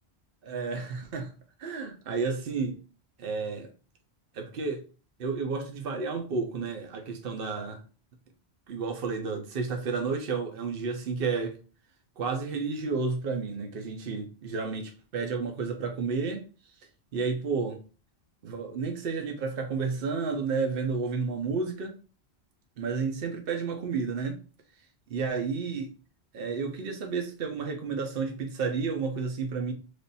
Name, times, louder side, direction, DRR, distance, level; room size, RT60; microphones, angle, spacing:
voice 1, 0.5-1.3 1.6-2.8 3.2-3.7 4.3-4.8 5.2-7.8 8.7-11.6 12.2-16.4 17.1-17.8 18.4-21.9 22.8-24.4 25.1-25.9 26.3-29.7, right 4 dB, 65° right, 1.0 m, -31 dB
3.4 x 2.5 x 4.0 m
omnidirectional pair, 1.1 m